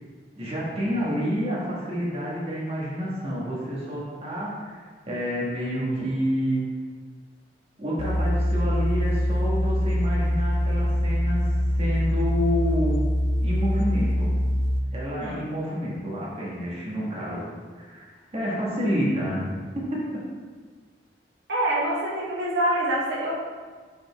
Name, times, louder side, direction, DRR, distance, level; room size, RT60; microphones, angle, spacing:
voice 1, 0.4-6.6 7.8-11.5 11.8-13.0 13.4-14.3 14.9-19.6, equal, 35° right, -6 dB, 1.5 m, -29 dB
sound 1, 8.0-14.8, equal, 85° left, 0.6 m, -24 dB
voice 2, 21.5-23.3, right 1 dB, 80° right, -5 dB, 1.3 m, -25 dB
5.8 x 5.2 x 3.5 m, 1.5 s
head